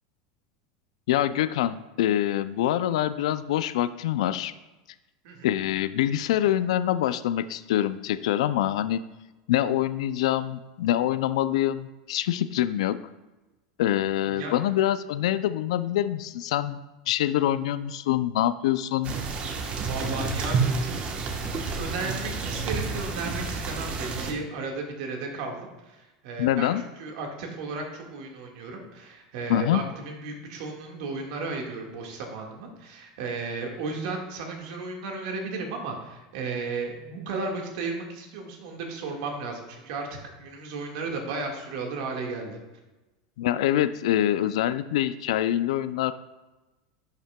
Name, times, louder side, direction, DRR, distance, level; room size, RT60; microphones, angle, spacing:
voice 1, 1.1-4.5 5.4-9.0 9.5-13.0 13.8-16.8 17.1-19.1 26.4-26.8 29.5-29.8 43.4-46.1, left 12 dB, 80° left, 13 dB, 0.3 m, -25 dB
voice 2, 14.2-14.5 19.6-20.9 21.7-26.7 27.0-42.6, right 3 dB, 70° right, 2 dB, 1.6 m, -34 dB
sound 1, 19.0-24.3, right 4 dB, 35° right, 1.1 m, -29 dB
11.0 x 5.7 x 2.2 m, 1.1 s
supercardioid pair, 115°, 3 cm